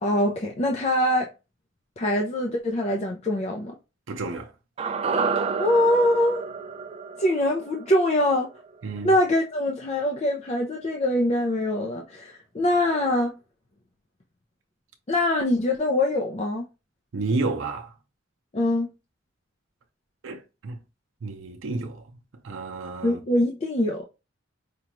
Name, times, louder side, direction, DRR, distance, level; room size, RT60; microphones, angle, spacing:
voice 1, 0.0-1.3 2.0-3.7 5.6-6.4 7.2-8.5 9.0-13.3 15.1-16.7 18.5-18.9 23.0-24.1, left 1 dB, 35° left, 0.5 m, -23 dB
voice 2, 4.1-4.5 8.8-9.1 17.1-17.9 20.2-20.8 21.2-22.0 22.4-23.2, right 3 dB, 85° right, 0.6 m, -30 dB
sound 1, 4.8-9.1 9.4-9.5, right 5 dB, 30° right, 0.3 m, -30 dB
5.0 x 2.3 x 3.0 m
head